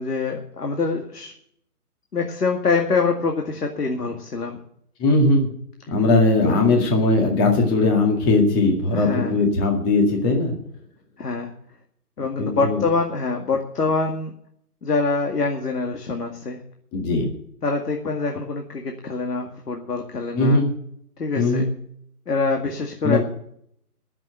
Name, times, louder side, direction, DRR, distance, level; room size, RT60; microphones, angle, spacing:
voice 1, 0.0-1.3 2.1-4.6 6.4-6.5 8.9-9.3 11.2-11.5 12.2-14.3 14.8-16.6 17.6-20.6 21.2-21.6 22.3-23.2, left 4 dB, 75° left, 3 dB, 2.3 m, -25 dB
voice 2, 5.0-5.5 5.9-10.6 12.4-12.8 16.9-17.3 20.3-20.7 21.4-21.7 23.0-23.2, left 2 dB, 15° left, 1 dB, 2.0 m, -19 dB
19.0 x 7.6 x 6.6 m, 0.69 s
hypercardioid pair, 155°, 47 cm